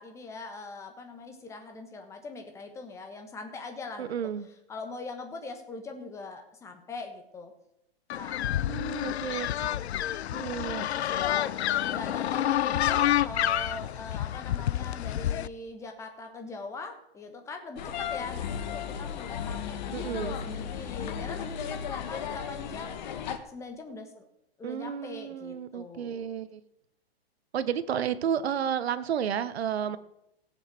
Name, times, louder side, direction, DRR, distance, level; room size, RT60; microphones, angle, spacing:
voice 1, 0.0-4.2 4.7-7.5 8.1-8.4 9.6-9.7 10.8-11.5 11.8-23.1 23.5-24.2 24.6-26.4, left 3 dB, 10° left, 5 dB, 1.3 m, -42 dB
voice 2, 4.0-4.5 8.7-9.5 10.3-10.9 19.9-20.4 24.6-26.6 27.5-30.0, right 8 dB, 75° right, 13 dB, 1.2 m, -31 dB
sound 1, 8.1-15.5, left 12 dB, 90° left, 0.6 m, -28 dB
sound 2, 17.8-23.4, left 8 dB, 45° left, 1.4 m, -35 dB
17.0 x 7.3 x 6.1 m, 0.81 s
hypercardioid pair, 160°, 32 cm